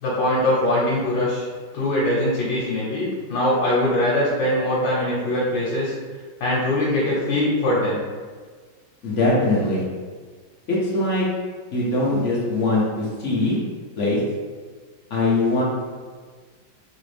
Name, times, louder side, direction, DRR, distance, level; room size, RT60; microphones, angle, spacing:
voice 1, 0.0-1.5 1.7-5.9 6.4-8.0, left 1 dB, 85° left, -6 dB, 1.5 m, -22 dB
voice 2, 9.0-9.8 10.7-11.3 11.7-13.6 14.0-14.2 15.1-15.6, left 2 dB, 50° left, -6 dB, 1.0 m, -21 dB
3.8 x 2.5 x 3.2 m, 1.5 s
omnidirectional pair, 2.0 m